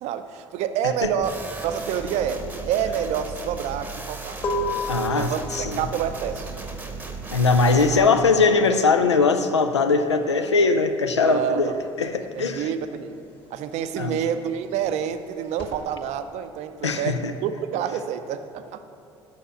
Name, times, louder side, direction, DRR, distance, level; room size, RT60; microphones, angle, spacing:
voice 1, 0.0-4.4 5.2-6.6 11.2-11.7 12.3-13.2 13.5-18.8, right 9 dB, 50° right, 10 dB, 0.5 m, -28 dB
sound 1, 1.0-11.3 11.5-15.8, left 1 dB, 40° left, 1.8 m, -34 dB
sound 2, 1.2-8.1, right 3 dB, 10° right, 0.9 m, -36 dB
voice 2, 4.9-5.8 7.3-11.7 12.0-12.7 14.0-14.2 16.8-17.3, left 4 dB, 85° left, 8 dB, 0.4 m, -20 dB
6.6 x 5.5 x 6.3 m, 2.6 s
figure-of-eight pair, 55°, 14 cm